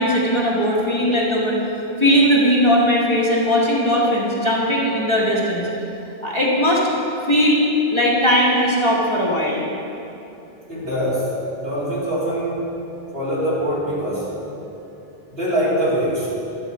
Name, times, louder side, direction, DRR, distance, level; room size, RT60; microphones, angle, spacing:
voice 1, 0.0-1.6 2.0-5.7 6.2-6.9 7.3-9.6, equal, 30° left, -5 dB, 1.4 m, -18 dB
voice 2, 10.7-11.3 11.6-12.7 13.1-14.3 15.3-16.3, equal, 70° right, -8 dB, 2.9 m, -23 dB
11.5 x 4.8 x 7.4 m, 2.9 s
omnidirectional pair, 1.0 m